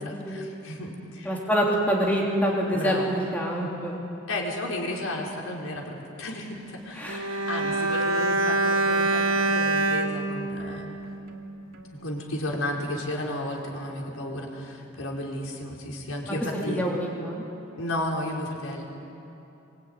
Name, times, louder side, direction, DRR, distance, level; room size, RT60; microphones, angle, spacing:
voice 1, 0.0-1.4 2.7-3.1 4.3-11.0 11.9-16.8 17.8-18.8, left 1 dB, 85° left, -1 dB, 4.7 m, -33 dB
voice 2, 1.2-4.0 6.9-7.3 16.3-16.4 16.7-17.4, equal, 10° left, -3 dB, 3.3 m, -26 dB
Bowed string instrument, 7.0-11.5 11.7-11.9, right 2 dB, 90° right, 2.4 m, -26 dB
25.5 x 24.0 x 9.5 m, 2.9 s
head